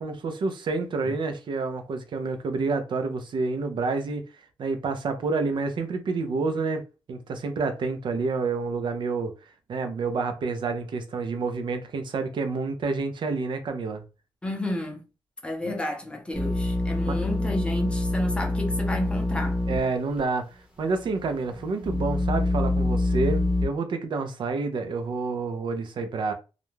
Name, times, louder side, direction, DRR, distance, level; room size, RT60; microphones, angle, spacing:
voice 1, 0.0-4.2 4.6-9.3 9.7-14.0 15.6-15.7 17.1-17.2 19.7-20.5 20.8-26.3, right 4 dB, 60° right, 0.5 m, -28 dB
voice 2, 14.4-15.0 15.4-19.6, left 1 dB, 10° left, 0.6 m, -31 dB
sound 1, 16.3-19.9 20.2-20.3 20.9-23.7, left 2 dB, 15° right, 0.8 m, -26 dB
2.4 x 2.1 x 3.0 m
wide cardioid pair, 155°, 9 cm